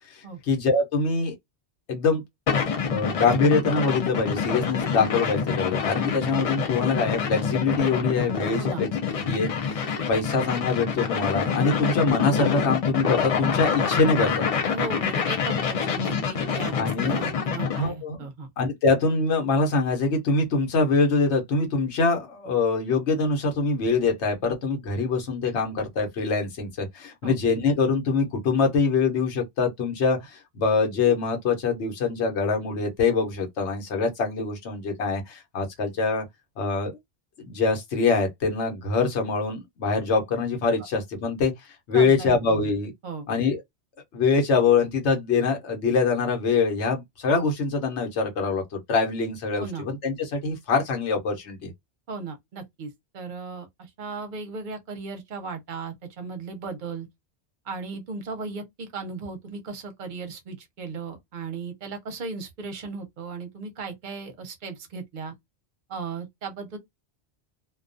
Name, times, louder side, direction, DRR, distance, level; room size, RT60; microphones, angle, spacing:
voice 1, 0.1-1.3 1.9-2.2 2.9-8.9 9.2-14.4 16.7-17.2 17.6-18.3 18.6-36.2 36.6-36.9 37.4-41.5 41.9-42.9 43.3-43.6 44.1-51.7, left 4 dB, 85° left, 1.0 m, -24 dB
sound 1, 2.5-17.9, left 6 dB, 55° left, 0.4 m, -26 dB
voice 2, 14.7-18.5 27.2-27.4 41.9-42.7 43.0-43.3 49.6-49.9 52.1-57.1 57.6-65.3 65.9-66.8, right 4 dB, 50° right, 0.7 m, -36 dB
2.3 x 2.2 x 2.5 m
omnidirectional pair, 1.1 m